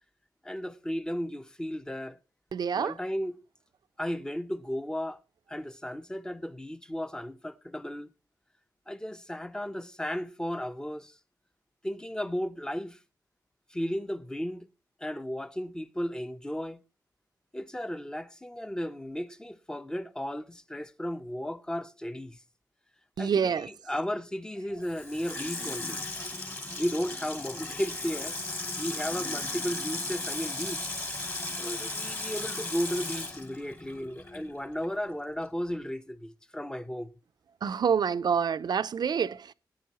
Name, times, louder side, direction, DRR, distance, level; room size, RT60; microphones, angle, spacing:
voice 1, 0.4-2.2 2.7-3.3 4.0-5.2 5.5-8.1 8.9-11.2 11.8-13.0 13.7-14.7 15.0-16.8 17.5-22.4 23.2-26.0 26.8-28.4 28.8-30.9 31.6-37.1, equal, 10° left, 0.9 m, -34 dB
voice 2, 2.5-3.0 23.2-23.7 26.2-26.3 37.6-39.5, right 7 dB, 65° right, 0.6 m, -27 dB
Water tap faucet / Sink (filling or washing), 24.8-34.5 34.8-34.9, left 2 dB, 30° left, 2.9 m, -36 dB
19.5 x 9.9 x 3.0 m
wide cardioid pair, 105°, 8 cm